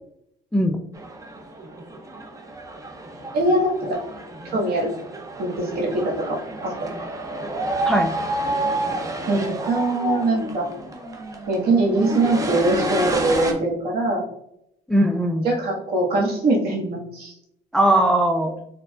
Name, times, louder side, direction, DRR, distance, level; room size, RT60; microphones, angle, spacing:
sound 1, 1.0-13.5, right 2 dB, 20° right, 0.7 m, -30 dB
voice 1, 3.3-4.0 4.5-4.9 5.4-6.7 9.3-10.7 11.5-14.2 15.4-17.3, right 2 dB, 70° right, -3 dB, 1.6 m, -22 dB
voice 2, 7.8-8.2 14.9-15.5 17.7-18.6, right 1 dB, 5° left, 4 dB, 0.3 m, -19 dB
4.5 x 3.7 x 2.4 m, 0.77 s
cardioid pair, 110°, 17 cm